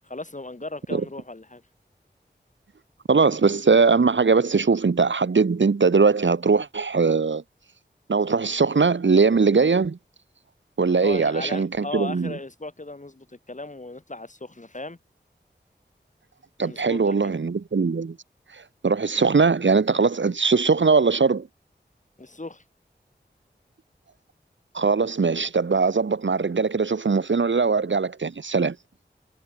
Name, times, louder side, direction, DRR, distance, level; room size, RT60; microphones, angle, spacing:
voice 1, 0.0-1.6 11.0-15.0 16.6-17.4 22.2-22.6, left 2 dB, 40° left, 5.5 m, -37 dB
voice 2, 3.1-7.4 8.1-10.0 10.8-12.4 16.6-18.2 18.5-21.5 24.7-28.8, right 4 dB, 85° right, 1.5 m, -21 dB
wide cardioid pair, 65°, 19 cm